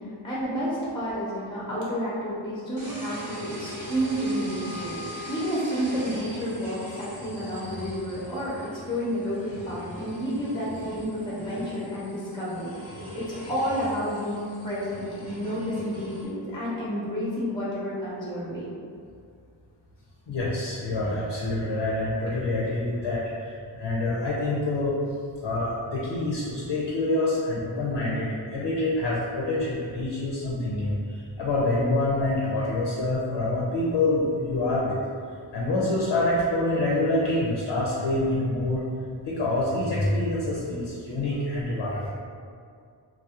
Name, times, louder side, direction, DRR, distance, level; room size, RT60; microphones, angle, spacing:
voice 1, 0.0-5.0 5.3-8.6 8.9-18.7, equal, 10° left, -7 dB, 0.5 m, -30 dB
sound 1, 2.8-16.2, equal, 85° right, 0.9 m, -41 dB
voice 2, 20.3-24.9 25.4-35.0 35.5-38.8 39.2-42.1, left 2 dB, 65° left, -6 dB, 0.5 m, -26 dB
2.3 x 2.0 x 2.7 m, 2.3 s
wide cardioid pair, 50°, 45 cm